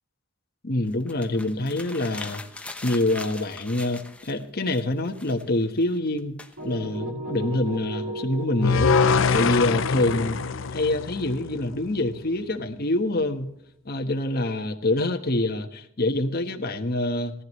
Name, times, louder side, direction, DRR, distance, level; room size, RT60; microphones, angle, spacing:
voice 1, 0.6-2.4 2.8-6.4 6.6-10.4 10.7-13.5 13.8-17.3, left 2 dB, 50° left, 5 dB, 1.3 m, -26 dB
sound 1, 0.9-4.5 4.7-7.0, left 2 dB, 5° left, 0.9 m, -41 dB
sound 2, 6.6-12.4, right 1 dB, 75° right, 2.5 m, -37 dB
sound 3, 8.6-11.8, left 5 dB, 70° left, 0.6 m, -23 dB
18.0 x 14.0 x 3.2 m, 0.77 s
head